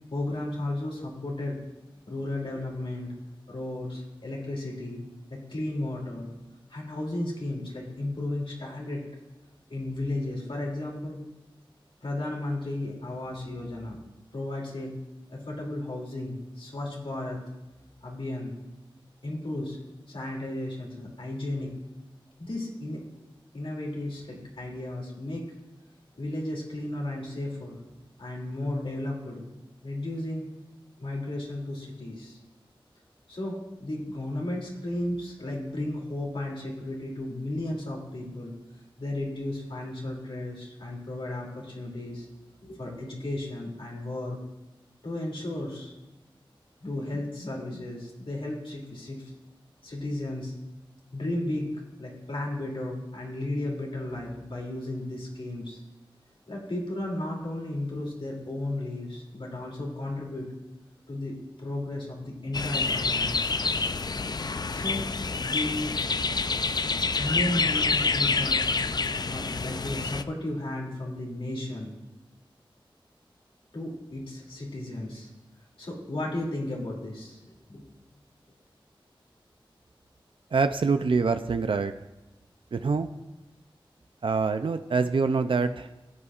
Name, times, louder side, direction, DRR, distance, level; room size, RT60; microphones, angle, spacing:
voice 1, 0.1-1.6 2.1-3.1 3.5-5.0 5.3-6.3 6.7-9.1 9.7-11.2 12.0-14.0 14.3-14.9 15.3-17.4 18.0-18.5 19.2-19.8 20.1-21.7 22.4-23.0 23.5-25.5 26.2-27.8 28.2-29.4 29.8-30.5 31.0-32.4 33.3-38.5 39.0-42.3 42.6-44.4 45.0-45.9 46.8-49.3 49.8-50.5 51.1-51.7 52.0-55.8 56.5-60.5 61.1-63.4 64.7-65.9 67.2-68.6 69.3-71.9 73.7-75.3 75.8-77.4 77.7-77.8, left 1 dB, 70° left, -2 dB, 2.7 m, -34 dB
sound 1, 62.5-70.2, left 4 dB, 45° left, 0.4 m, -27 dB
voice 2, 80.5-81.9 82.7-83.1 84.2-86.1, right 4 dB, 65° right, 9 dB, 0.4 m, -25 dB
17.0 x 8.4 x 2.4 m, 1.0 s
wide cardioid pair, 50°, 9 cm